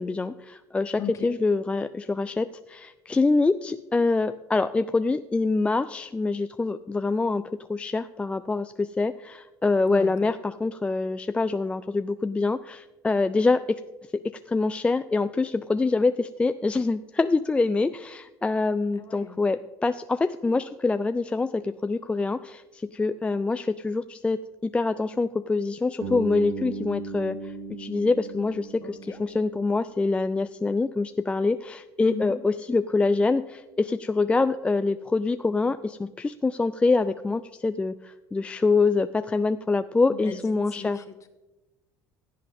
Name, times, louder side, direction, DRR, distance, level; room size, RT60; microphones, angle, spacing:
voice 1, 0.0-7.4 7.7-13.8 14.5-41.0, left 3 dB, 15° left, 11 dB, 0.3 m, -25 dB
voice 2, 0.9-1.3 9.9-10.1 19.0-19.3 28.8-29.2 32.0-32.3 40.2-40.4 40.8-41.3, left 7 dB, 40° left, 8 dB, 1.4 m, -37 dB
Bass guitar, 26.0-30.0, right 3 dB, 80° right, 2.6 m, -37 dB
16.0 x 7.6 x 3.6 m, 1.1 s
supercardioid pair, 95°, 8 cm